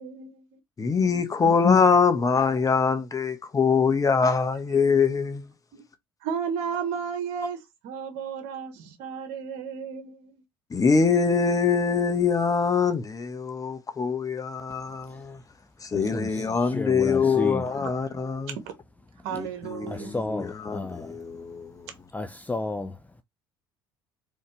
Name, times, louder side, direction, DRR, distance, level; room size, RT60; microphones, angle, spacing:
voice 1, 0.0-0.6 1.4-1.6 5.7-5.8 6.2-10.4 16.4-18.2 18.7-18.8 19.2-20.1, right 7 dB, 65° right, 1.3 m, -35 dB
voice 2, 0.8-5.4 10.7-15.4 15.8-18.5 19.4-21.7, left 5 dB, 30° left, 1.2 m, -23 dB
voice 3, 15.9-17.6 19.9-21.1 22.1-23.0, left 2 dB, 10° left, 0.5 m, -32 dB
4.2 x 3.6 x 3.2 m
hypercardioid pair, 65°, 12 cm